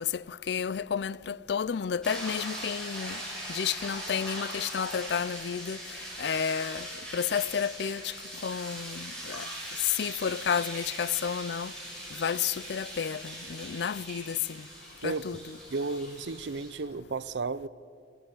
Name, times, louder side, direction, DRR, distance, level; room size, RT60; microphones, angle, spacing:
voice 1, 0.0-3.2 3.5-5.8 6.2-6.9 7.1-8.1 8.4-9.5 10.0-11.7 12.2-14.6 15.0-15.6, left 7 dB, 70° left, 0.4 m, -31 dB
sound 1, 2.0-16.7, right 1 dB, 5° left, 7.5 m, -41 dB
voice 2, 15.0-15.4 15.7-17.7, right 3 dB, 90° right, 0.6 m, -33 dB
26.0 x 13.5 x 8.0 m
head